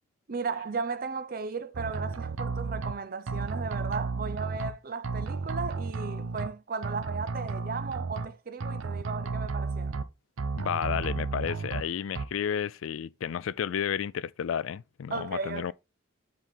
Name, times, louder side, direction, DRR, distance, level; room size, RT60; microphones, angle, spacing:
voice 1, 0.3-10.0 15.1-15.7, right 4 dB, 45° right, 0.5 m, -35 dB
sound 1, 1.7-2.9 3.3-4.7 5.0-6.5 6.8-8.3 8.6-10.0 10.4-11.8 12.1-12.3, right 4 dB, 90° right, 0.6 m, -33 dB
voice 2, 10.6-15.7, left 8 dB, 80° left, 0.4 m, -32 dB
7.4 x 4.1 x 3.6 m
head